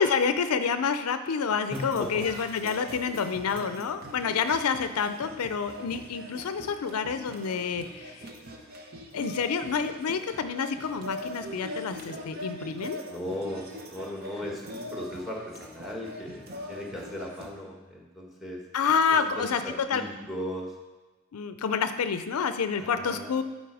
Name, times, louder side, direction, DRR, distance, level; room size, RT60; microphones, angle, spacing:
voice 1, 0.0-8.2 9.1-13.0 18.7-19.6 19.9-20.0 21.3-23.4, left 6 dB, 90° left, 10 dB, 0.5 m, -28 dB
voice 2, 1.7-2.2 13.1-18.6 19.4-20.7 22.8-23.4, left 1 dB, ahead, -1 dB, 1.2 m, -37 dB
sound 1, 1.7-17.5, equal, 45° right, 0.8 m, -42 dB
9.4 x 4.1 x 4.8 m, 1.2 s
head